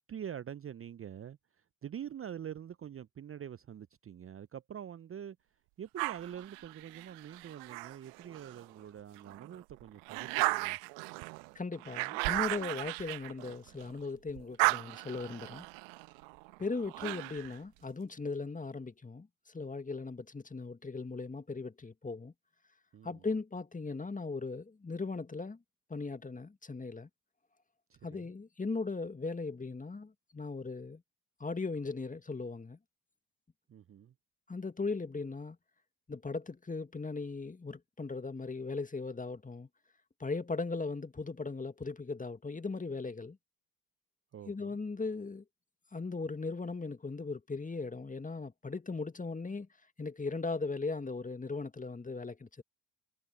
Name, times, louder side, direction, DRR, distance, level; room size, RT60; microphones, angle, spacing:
voice 1, 0.0-5.4 5.8-10.8 22.9-23.3 27.9-28.3 33.7-34.1 44.3-44.8, right 9 dB, 25° right, 0.8 m, -45 dB
sound 1, 6.0-8.7 9.2-14.0 14.3-17.6, right 31 dB, 60° right, 1.2 m, -36 dB
voice 2, 11.6-15.6 16.6-19.3 19.5-22.3 23.0-25.6 25.9-27.1 28.0-31.0 31.4-32.8 34.5-35.6 36.1-39.7 40.2-43.4 44.5-45.4 45.9-49.7 50.0-52.6, left 3 dB, 15° left, 1.9 m, -38 dB
figure-of-eight pair, 55°, 50 cm